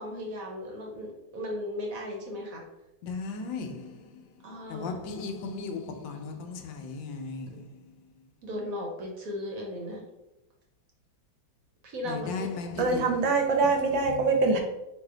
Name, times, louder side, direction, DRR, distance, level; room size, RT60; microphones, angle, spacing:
voice 1, 0.0-2.6 4.4-4.9 8.4-10.0 11.8-12.5, left 1 dB, 55° right, 1.2 m, -36 dB
voice 2, 3.0-4.3 4.7-7.9 12.0-13.1, left 4 dB, 75° left, 1.3 m, -36 dB
voice 3, 12.8-14.6, right 3 dB, 75° right, 1.4 m, -24 dB
4.0 x 2.7 x 4.8 m
omnidirectional pair, 2.1 m